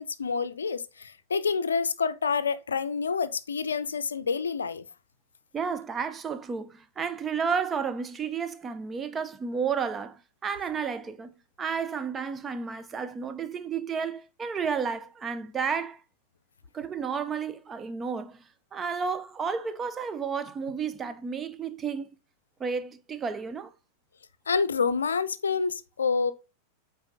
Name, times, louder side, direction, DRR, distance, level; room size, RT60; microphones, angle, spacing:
voice 1, 0.0-4.8 24.5-26.3, left 5 dB, 70° left, 0.5 m, -28 dB
voice 2, 5.5-11.3 11.6-16.0 16.7-22.1 22.6-23.7, right 6 dB, 20° right, 0.7 m, -32 dB
8.7 x 4.1 x 3.9 m
figure-of-eight pair, 90°, 0 cm